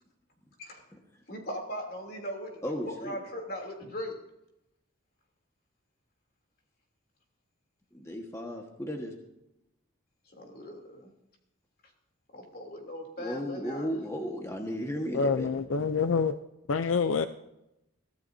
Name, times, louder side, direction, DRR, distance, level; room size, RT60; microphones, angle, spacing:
voice 1, 1.3-4.1 10.4-11.1 12.3-13.9, equal, 45° left, 2 dB, 3.1 m, -39 dB
voice 2, 2.6-3.2 7.9-9.1 13.2-15.7, equal, 15° left, 2 dB, 1.4 m, -35 dB
voice 3, 15.1-16.3 16.7-17.3, left 5 dB, 70° left, 10 dB, 0.5 m, -26 dB
23.0 x 15.0 x 2.7 m, 0.89 s
head